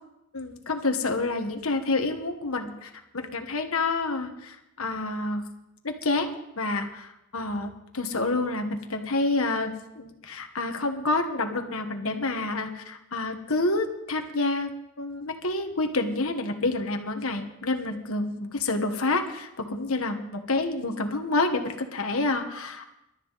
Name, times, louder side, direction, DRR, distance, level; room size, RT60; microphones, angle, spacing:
voice 1, 0.3-5.4 5.8-14.7 15.0-22.9, left 2 dB, 70° left, 5 dB, 1.4 m, -28 dB
21.5 x 12.5 x 4.1 m, 0.89 s
head